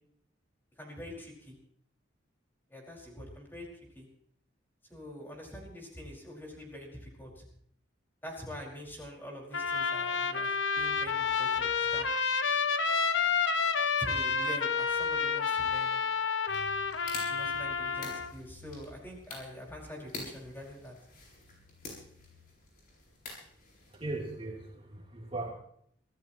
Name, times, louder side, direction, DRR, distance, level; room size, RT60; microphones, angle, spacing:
voice 1, 0.8-1.6 2.7-3.7 3.9-4.1 4.9-7.5 8.2-12.1 14.0-16.0 17.3-20.9, equal, 10° left, -2 dB, 5.2 m, -45 dB
Trumpet, 9.5-18.3, left 5 dB, 80° left, 1.2 m, -30 dB
sound 1, 16.5-24.2, left 2 dB, 50° left, 7.1 m, -47 dB
voice 2, 23.9-25.5, right 2 dB, 30° right, -2 dB, 3.3 m, -38 dB
25.5 x 16.5 x 3.0 m, 0.65 s
head